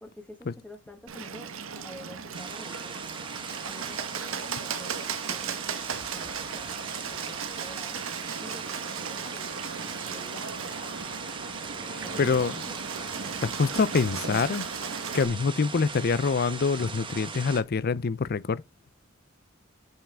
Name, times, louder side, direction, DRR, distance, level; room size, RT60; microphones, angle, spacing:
voice 1, 0.0-3.1 3.6-5.7 6.1-8.0 8.4-10.8 11.9-12.8, equal, 5° left, 1.4 m, -49 dB
Bird, 1.1-15.3, right 6 dB, 85° right, 1.1 m, -36 dB
sound 1, 2.3-17.6, right 4 dB, 25° right, 1.1 m, -40 dB
voice 2, 12.2-12.5 13.4-14.6 15.1-18.6, left 4 dB, 50° left, 0.5 m, -25 dB
7.4 x 5.7 x 3.4 m
head